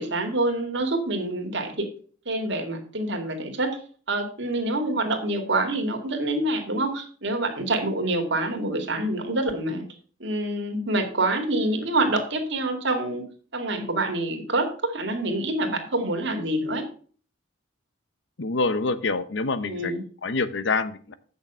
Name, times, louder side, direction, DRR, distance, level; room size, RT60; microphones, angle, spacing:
voice 1, 0.0-1.9 2.3-3.7 4.1-9.9 10.2-13.2 13.5-16.8 19.6-20.0, right 2 dB, 65° right, 4 dB, 2.3 m, -26 dB
voice 2, 18.4-19.9 20.2-21.1, left 3 dB, 65° left, 14 dB, 0.8 m, -26 dB
8.5 x 6.6 x 5.5 m, 0.43 s
head